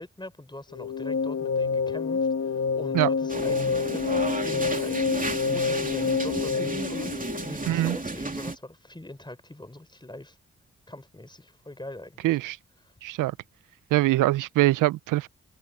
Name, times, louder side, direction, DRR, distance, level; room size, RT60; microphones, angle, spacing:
voice 1, 0.0-10.4 10.9-12.4 12.8-12.9, left 1 dB, 15° left, 5.0 m, -42 dB
sound 1, 0.7-7.9, left 5 dB, 55° left, 1.6 m, -28 dB
sound 2, 3.3-8.6, right 3 dB, 25° right, 3.0 m, -33 dB
voice 2, 12.2-12.6 13.0-13.3 13.9-15.3, right 17 dB, 90° right, 0.5 m, -23 dB
supercardioid pair, 45°, 31 cm